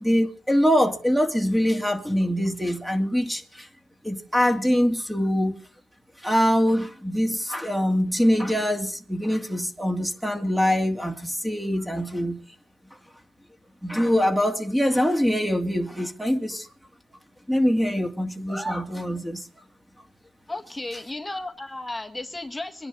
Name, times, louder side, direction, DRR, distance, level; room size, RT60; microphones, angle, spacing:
voice 1, 0.0-3.7 4.0-5.5 6.2-12.4 13.8-16.7 17.5-19.4, equal, 5° right, 2.5 m, -23 dB
voice 2, 20.5-22.9, left 2 dB, 10° left, 1.7 m, -34 dB
24.5 x 10.5 x 4.0 m
cardioid pair, 90°, 0 cm